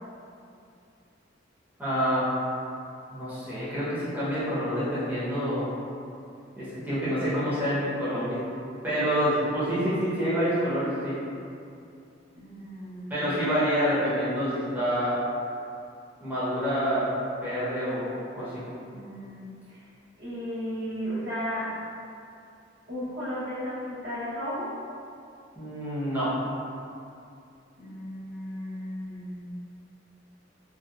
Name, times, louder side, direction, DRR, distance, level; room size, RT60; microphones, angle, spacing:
voice 1, 1.8-2.3 3.1-5.7 6.6-8.4 8.8-11.1 13.1-15.2 16.2-17.1 17.4-18.1 18.4-18.6 25.6-26.3, equal, 10° right, -12 dB, 0.7 m, -27 dB
voice 2, 12.3-13.3 18.8-19.4 19.7-19.9 20.2-21.8 22.9-24.8 27.8-29.4, equal, 65° right, -11 dB, 0.9 m, -35 dB
2.6 x 2.1 x 2.3 m, 2.5 s
head